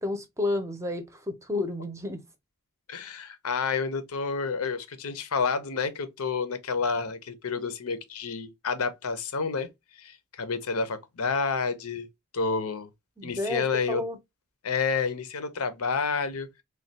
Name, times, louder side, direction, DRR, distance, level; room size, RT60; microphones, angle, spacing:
voice 1, 0.0-2.2 13.2-14.2, left 2 dB, 15° right, 0.6 m, -31 dB
voice 2, 2.9-12.1 12.3-12.9 13.2-14.0 14.6-16.6, left 5 dB, 80° left, 0.7 m, -29 dB
3.1 x 2.3 x 4.0 m
head